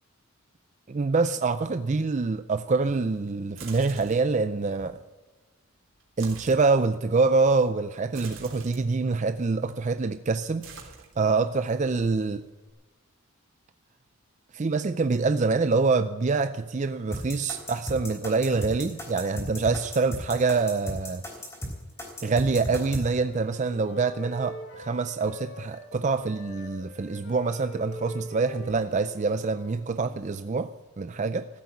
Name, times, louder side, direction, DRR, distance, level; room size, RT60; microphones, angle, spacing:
voice 1, 0.9-5.0 6.2-12.4 14.5-21.2 22.2-30.7 31.0-31.5, right 4 dB, 35° right, 0.4 m, -25 dB
sound 1, 3.4-4.3 6.0-6.7 8.1-8.8 9.6-10.1 10.3-11.5 11.9-12.7, right 5 dB, 60° right, 3.3 m, -45 dB
sound 2, 17.1-23.0, equal, 15° left, 3.5 m, -35 dB
Wind instrument woodwind instrument, 22.2-25.9 26.2-30.3, equal, 65° left, 3.9 m, -44 dB
15.0 x 8.0 x 9.5 m
head